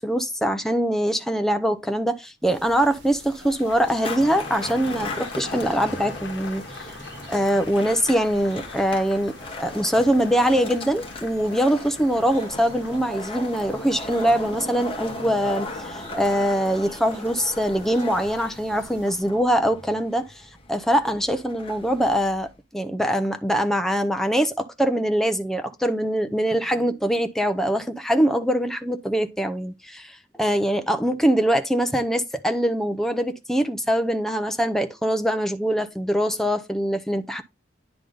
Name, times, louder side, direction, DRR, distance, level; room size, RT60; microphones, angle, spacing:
voice 1, 0.0-6.6 7.3-20.3 20.7-37.4, equal, ahead, 0.6 m, -23 dB
sound 1, 2.4-19.2, right 2 dB, 90° right, 1.6 m, -48 dB
sound 2, 3.1-19.2 19.5-19.9, left 5 dB, 90° left, 0.9 m, -44 dB
Skateboard, 3.9-22.5, left 1 dB, 30° left, 1.4 m, -37 dB
10.0 x 3.5 x 3.8 m
head